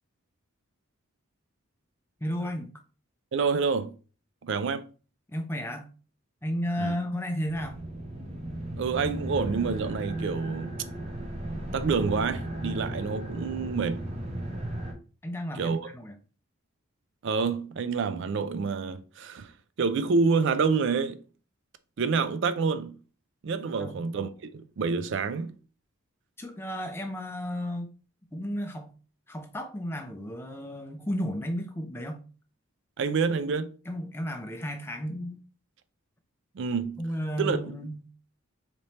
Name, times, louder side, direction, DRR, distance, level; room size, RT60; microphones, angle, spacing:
voice 1, 2.2-2.7 5.3-5.9 6.4-7.8 15.2-16.1 23.7-24.0 26.4-27.9 28.3-28.9 29.3-32.2 33.9-35.4 37.0-38.0, equal, 10° left, 0.5 m, -33 dB
voice 2, 3.3-4.0 4.4-4.9 6.8-7.0 8.8-10.8 11.7-14.1 15.5-15.9 17.2-21.2 22.0-23.0 23.4-25.6 33.0-33.7 36.5-37.1 37.4-37.8, right 5 dB, 55° right, 0.4 m, -28 dB
sound 1, 7.5-14.9, right 1 dB, 30° right, 0.7 m, -35 dB
4.1 x 2.9 x 3.2 m
head